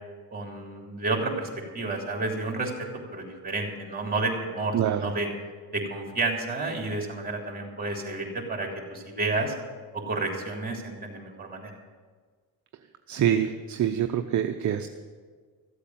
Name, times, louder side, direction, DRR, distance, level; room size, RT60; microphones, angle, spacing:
voice 1, 0.3-5.3 5.7-9.5 9.9-11.7, right 3 dB, 25° right, 1 dB, 3.5 m, -31 dB
voice 2, 4.7-5.1 13.1-14.9, right 9 dB, 50° right, 6 dB, 0.8 m, -25 dB
14.5 x 8.2 x 7.6 m, 1.5 s
cardioid pair, 90°, 38 cm